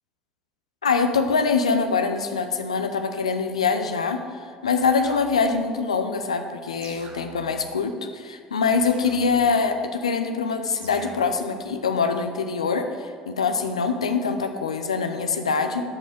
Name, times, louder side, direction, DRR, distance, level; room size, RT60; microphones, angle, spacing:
voice 1, 0.8-15.8, left 5 dB, 90° left, 7 dB, 0.6 m, -24 dB
sound 1, 4.8-5.7 6.8-7.7 8.8-9.7 10.8-11.7, right 3 dB, 65° right, 1.3 m, -45 dB
12.0 x 5.3 x 5.2 m, 2.1 s
hypercardioid pair, 60°, 3 cm